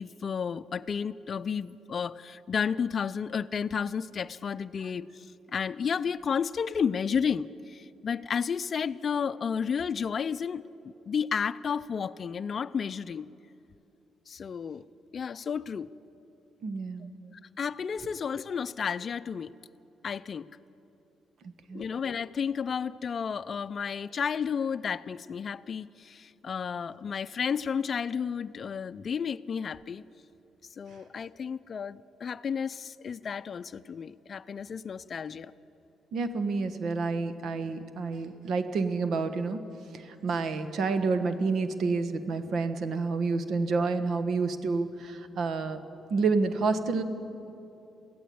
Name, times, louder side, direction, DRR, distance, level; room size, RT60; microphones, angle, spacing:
voice 1, 0.0-5.3 5.5-10.7 11.1-13.3 14.3-14.8 15.1-15.9 17.6-19.5 20.0-20.5 21.7-30.0 30.8-35.5, left 6 dB, 45° left, 15 dB, 0.5 m, -32 dB
voice 2, 16.6-17.1 21.7-21.8 36.1-39.6 40.2-45.8 46.1-47.0, right 4 dB, 65° right, 9 dB, 1.4 m, -29 dB
23.0 x 15.5 x 8.6 m, 2.8 s
cardioid pair, 90°, 0 cm